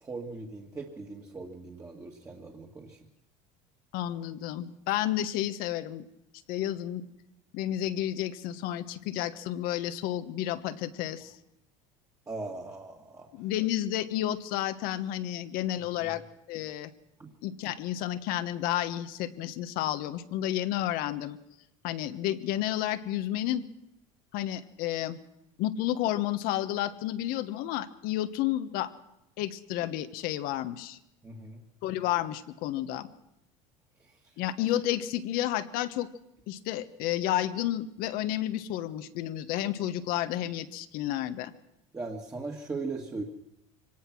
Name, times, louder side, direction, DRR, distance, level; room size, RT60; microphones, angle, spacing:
voice 1, 0.0-3.0 12.3-13.3 16.0-16.2 17.2-17.3 31.2-31.6 34.0-34.1 41.9-43.2, right 3 dB, 20° right, -1 dB, 2.0 m, -39 dB
voice 2, 3.9-6.1 6.5-7.0 7.5-11.3 13.3-16.2 16.5-16.9 17.4-21.4 21.8-23.6 24.3-25.2 25.6-28.9 29.4-31.0 31.8-33.1 34.4-36.1 36.5-41.5, left 13 dB, 65° left, 11 dB, 1.3 m, -31 dB
24.0 x 18.5 x 6.2 m, 0.85 s
supercardioid pair, 110°, 16 cm